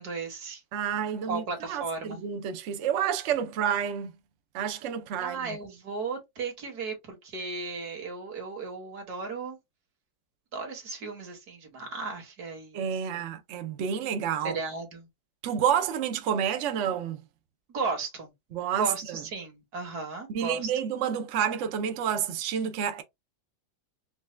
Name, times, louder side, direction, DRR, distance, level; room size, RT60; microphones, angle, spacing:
voice 1, 0.0-0.6 1.3-2.2 5.2-9.6 10.5-13.4 14.4-15.1 17.7-18.3 18.8-20.7, right 4 dB, 55° right, 1.9 m, -35 dB
voice 2, 0.7-1.4 1.7-4.1 4.5-5.6 12.7-14.6 15.4-17.2 18.5-19.2 20.3-23.0, right 8 dB, 90° right, 0.6 m, -29 dB
4.7 x 2.2 x 3.1 m
omnidirectional pair, 2.1 m